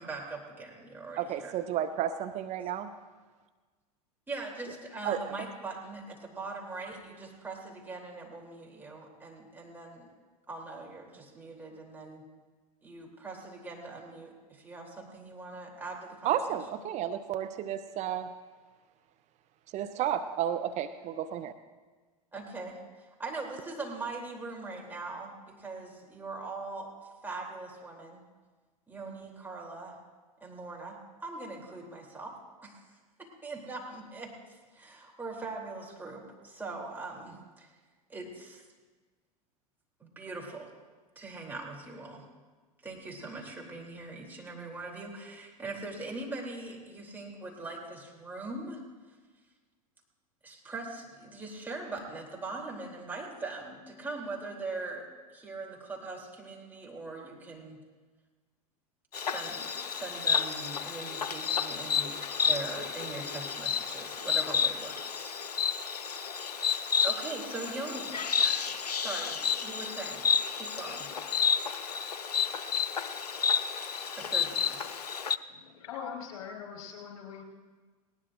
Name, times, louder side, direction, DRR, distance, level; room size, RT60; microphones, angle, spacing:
voice 1, 0.0-1.6 4.3-10.1 10.5-12.2 12.8-16.6 22.3-26.9 27.2-28.2 28.9-30.0 30.4-32.3 32.6-32.8 33.2-34.3 34.7-37.7 38.1-38.6 40.0-40.7 41.1-42.2 42.8-48.8 50.4-57.8 59.2-62.1 62.4-65.3 67.0-70.2 70.5-71.1 74.1-74.8, right 3 dB, 10° right, -2 dB, 3.2 m, -41 dB
voice 2, 1.2-2.9 5.0-5.2 16.2-18.3 19.7-21.5, right 10 dB, 35° right, 10 dB, 0.7 m, -32 dB
Insect, 59.1-75.4, left 6 dB, 80° left, 0.6 m, -31 dB
voice 3, 75.5-77.4, left 7 dB, 60° left, 0 dB, 4.5 m, -42 dB
19.5 x 18.5 x 2.6 m, 1.4 s
figure-of-eight pair, 90°, 20 cm